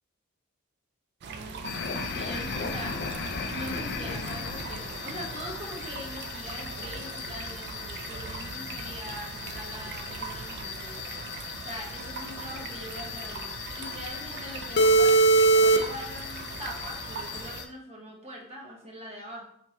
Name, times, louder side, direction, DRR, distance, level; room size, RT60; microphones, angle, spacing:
sound 1, 1.2-17.6, right 5 dB, 50° right, 0.3 m, -41 dB
voice 1, 1.3-19.4, equal, 30° right, -1 dB, 0.7 m, -42 dB
sound 2, 1.6-17.6, right 2 dB, 50° left, 0.3 m, -28 dB
3.4 x 2.8 x 2.9 m, 0.73 s
head